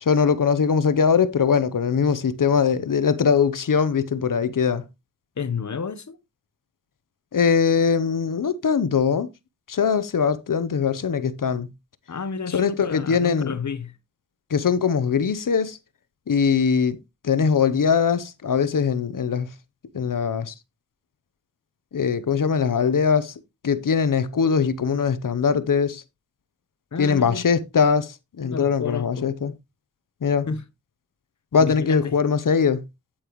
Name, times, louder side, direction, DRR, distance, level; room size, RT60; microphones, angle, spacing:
voice 1, 0.0-4.8 7.3-9.3 9.7-11.7 12.5-13.5 14.5-15.8 16.3-17.0 17.2-19.5 19.9-20.5 21.9-23.3 23.6-26.0 27.0-29.5 30.2-30.5 31.5-32.8, left 6 dB, 85° left, 0.8 m, -21 dB
voice 2, 5.4-6.2 12.1-13.9 26.9-27.4 28.4-29.3 30.5-30.6 31.6-32.2, left 5 dB, 65° left, 1.0 m, -31 dB
8.8 x 8.7 x 3.1 m
wide cardioid pair, 60°, 31 cm